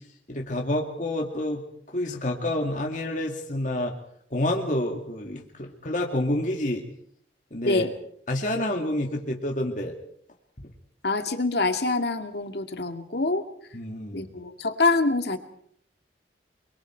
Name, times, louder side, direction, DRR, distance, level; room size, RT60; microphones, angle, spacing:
voice 1, 0.3-1.6 1.9-3.9 4.3-6.8 7.5-7.8 8.3-9.9 13.7-14.2, left 1 dB, 45° left, 1 dB, 2.4 m, -28 dB
voice 2, 11.0-13.5 14.1-15.4, left 3 dB, 60° left, 6 dB, 2.1 m, -25 dB
29.0 x 23.0 x 4.6 m, 0.67 s
head